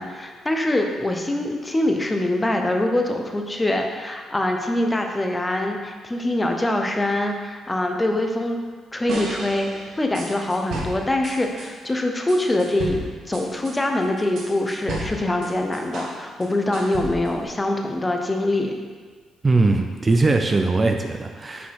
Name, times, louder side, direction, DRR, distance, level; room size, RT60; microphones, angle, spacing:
voice 1, 0.0-8.6 8.9-9.7 10.0-18.7, left 1 dB, 15° left, 3 dB, 0.7 m, -24 dB
sound 1, 9.1-11.7 12.3-16.2 16.4-17.4, right 2 dB, 70° right, 1.0 m, -33 dB
voice 2, 19.4-21.7, right 3 dB, 30° right, 5 dB, 0.4 m, -20 dB
6.0 x 3.9 x 4.7 m, 1.5 s
cardioid pair, 90°, 0 cm